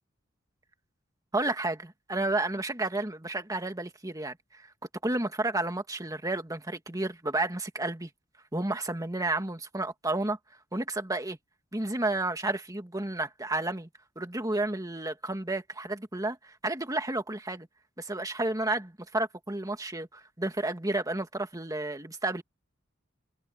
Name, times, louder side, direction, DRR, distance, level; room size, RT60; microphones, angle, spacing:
voice 1, 1.3-4.4 5.0-8.1 8.5-10.4 10.7-11.4 11.7-13.9 14.2-17.7 18.0-22.4, right 2 dB, 20° right, 2.0 m, -31 dB
head